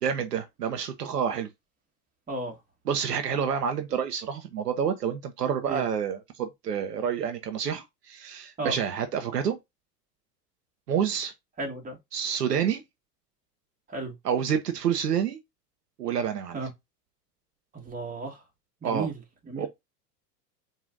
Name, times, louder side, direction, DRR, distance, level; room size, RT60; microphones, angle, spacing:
voice 1, 0.0-1.5 2.9-9.6 10.9-11.3 12.1-12.8 14.2-15.4 16.0-16.6 18.8-19.1 19.6-19.7, right 8 dB, 75° right, 0.8 m, -28 dB
voice 2, 11.6-12.0 13.9-14.1 16.5-16.7 17.7-18.4 18.8-19.2 19.5-19.7, right 3 dB, 15° right, 1.8 m, -33 dB
4.9 x 2.7 x 2.6 m
figure-of-eight pair, 85°, 48 cm